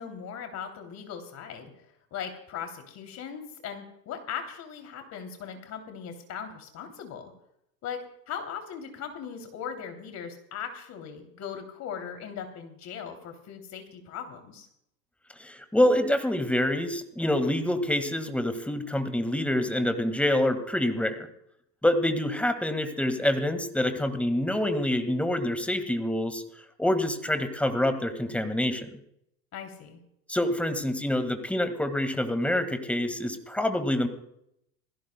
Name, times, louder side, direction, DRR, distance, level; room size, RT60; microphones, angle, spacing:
voice 1, 0.0-1.7 2.1-7.3 7.8-8.0 8.3-14.7 29.5-30.0, left 7 dB, 35° left, 5 dB, 2.9 m, -39 dB
voice 2, 15.4-21.3 21.8-26.4 26.8-28.9 30.3-34.1, left 1 dB, 5° left, 9 dB, 1.7 m, -26 dB
26.5 x 17.0 x 2.2 m, 0.77 s
hypercardioid pair, 90°, 48 cm